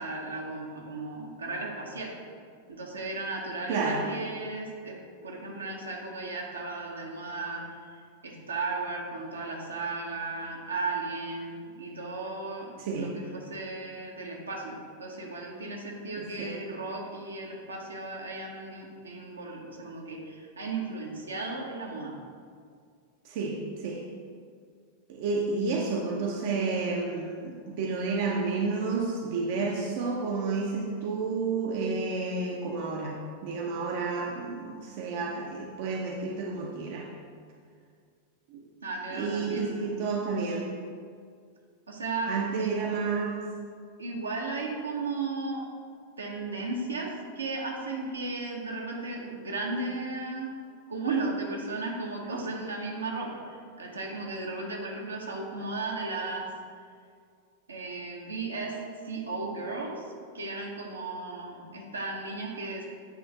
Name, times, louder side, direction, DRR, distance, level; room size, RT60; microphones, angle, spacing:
voice 1, 0.0-2.1 2.7-7.8 8.2-22.2 38.8-40.0 41.9-42.8 44.0-45.7 46.2-50.5 50.9-56.5 57.7-58.8 59.0-60.0 60.3-62.9, right 3 dB, 75° right, -1 dB, 0.9 m, -35 dB
voice 2, 3.7-4.0 12.8-13.1 16.2-16.6 23.2-24.0 25.1-37.1 38.5-38.7 39.1-40.7 42.3-43.5, right 4 dB, 50° right, -1 dB, 0.6 m, -31 dB
8.3 x 3.3 x 4.0 m, 2.2 s
figure-of-eight pair, 90°, 0 cm